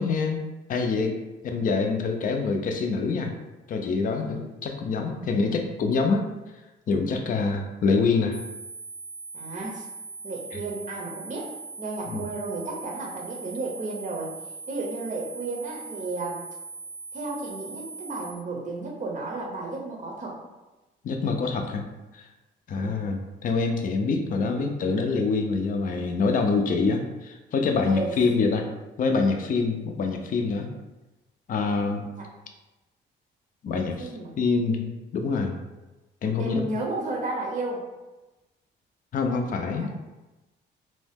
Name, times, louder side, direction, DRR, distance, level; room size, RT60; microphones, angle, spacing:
voice 1, 0.0-3.3 3.7-6.3 6.9-8.4 12.1-12.2 21.0-21.8 22.1-22.3 22.7-28.7 29.0-30.7 31.5-32.0 33.6-34.1 34.4-34.9 35.1-35.6 36.2-36.6 39.1-39.9, left 4 dB, 45° left, 4 dB, 0.4 m, -25 dB
sound 1, 8.3-18.3, right 4 dB, 10° left, 0.8 m, -40 dB
voice 2, 9.3-9.9 10.2-11.5 11.8-14.3 14.7-16.4 17.1-20.4 22.8-23.1 27.8-28.1 32.1-32.3 33.7-34.3 36.4-37.8 39.8-39.9, right 2 dB, 40° right, -1 dB, 0.6 m, -33 dB
2.6 x 2.0 x 3.4 m, 1.1 s
cardioid pair, 90°, 20 cm